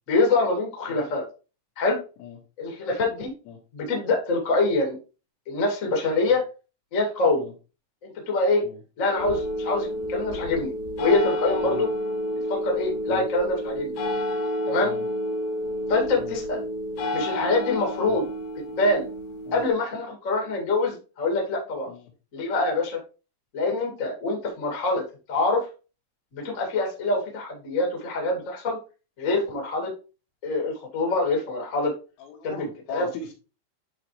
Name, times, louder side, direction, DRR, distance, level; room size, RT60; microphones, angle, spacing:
voice 1, 0.1-1.2 1.8-2.0 2.6-3.3 3.7-5.0 5.5-6.4 6.9-7.4 8.0-8.6 9.0-11.9 12.5-14.0 14.6-14.9 15.9-16.6 17.1-18.3 18.8-19.1 19.5-21.9 22.3-23.0 23.5-25.6 26.3-28.8 29.2-29.9 30.4-31.9 32.4-32.5 32.9-33.1, left 3 dB, 55° left, 1 dB, 0.9 m, -25 dB
sound 1, 9.2-19.7, equal, 70° left, 2.1 m, -30 dB
voice 2, 32.2-33.3, left 6 dB, 85° left, 2 dB, 4.1 m, -39 dB
10.5 x 3.9 x 3.1 m, 0.32 s
omnidirectional pair, 5.6 m